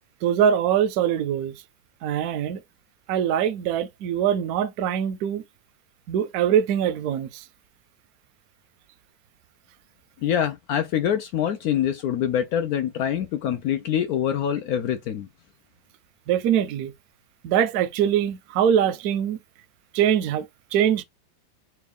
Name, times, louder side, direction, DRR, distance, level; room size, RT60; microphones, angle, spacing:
voice 1, 0.2-1.5 2.0-2.6 3.1-5.4 6.1-7.4 16.3-16.9 17.4-19.4 19.9-20.5 20.7-21.0, right 9 dB, 70° right, 0.9 m, -23 dB
voice 2, 10.2-15.3, left 9 dB, 75° left, 0.8 m, -25 dB
4.4 x 2.3 x 3.4 m
omnidirectional pair, 2.1 m